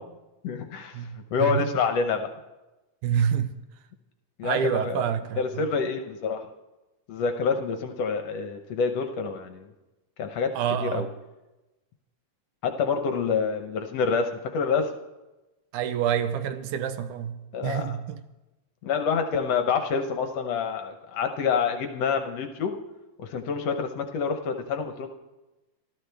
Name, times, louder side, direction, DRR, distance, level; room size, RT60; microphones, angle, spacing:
voice 1, 0.4-2.3 4.4-5.1 5.4-6.5 7.1-9.7 10.2-10.5 10.8-11.1 12.6-14.9 17.5-17.9 18.8-22.8 23.2-25.1, left 5 dB, 65° left, 1.8 m, -27 dB
voice 2, 3.0-3.5 4.4-5.7 10.6-11.1 15.7-18.2, right 8 dB, 85° right, 2.2 m, -27 dB
25.0 x 13.5 x 3.4 m
omnidirectional pair, 3.5 m